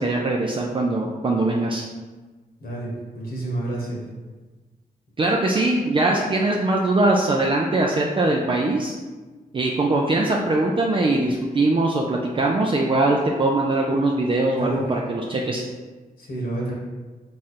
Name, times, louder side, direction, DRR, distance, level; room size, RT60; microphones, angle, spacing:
voice 1, 0.0-1.8 5.2-8.9 9.5-15.6, right 2 dB, 30° right, -1 dB, 0.4 m, -21 dB
voice 2, 2.6-4.0 14.6-14.8 16.2-16.7, right 1 dB, 75° left, -4 dB, 1.4 m, -29 dB
3.7 x 3.2 x 4.3 m, 1.3 s
wide cardioid pair, 105°, 16 cm